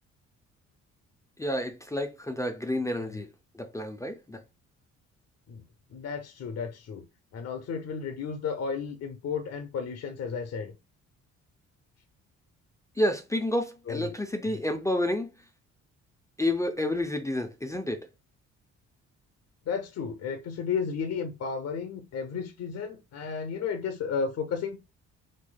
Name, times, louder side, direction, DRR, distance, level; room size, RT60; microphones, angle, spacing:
voice 1, 1.4-3.3 3.6-4.4 13.0-15.3 16.4-18.0, left 1 dB, 10° left, 0.5 m, -29 dB
voice 2, 5.9-7.0 7.3-10.7 13.9-14.2 14.5-14.6 19.7-24.8, left 6 dB, 55° left, 0.7 m, -33 dB
4.1 x 3.2 x 2.3 m
cardioid pair, 90°, 30 cm